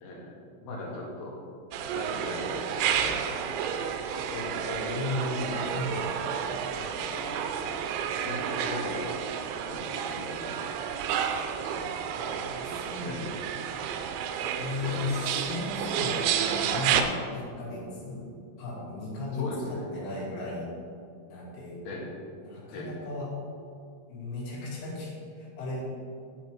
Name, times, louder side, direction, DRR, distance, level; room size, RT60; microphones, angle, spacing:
voice 1, 0.0-0.3 0.6-1.4 1.9-5.0 5.5-7.8 8.2-9.2 9.6-10.7 11.3-11.9 12.9-13.4 13.6-13.9 14.8-15.1 19.4-19.9 21.8-22.1 22.7-23.0, left 2 dB, 65° left, -3 dB, 3.1 m, -40 dB
sound 1, 1.7-17.0, right 8 dB, 80° right, 2.8 m, -31 dB
voice 2, 4.9-6.0 12.2-13.2 14.5-18.3 18.6-20.7 21.3-21.8 22.4-23.3 24.1-25.8, left 2 dB, 85° left, -7 dB, 4.4 m, -35 dB
8.9 x 7.7 x 4.5 m, 2.3 s
omnidirectional pair, 5.4 m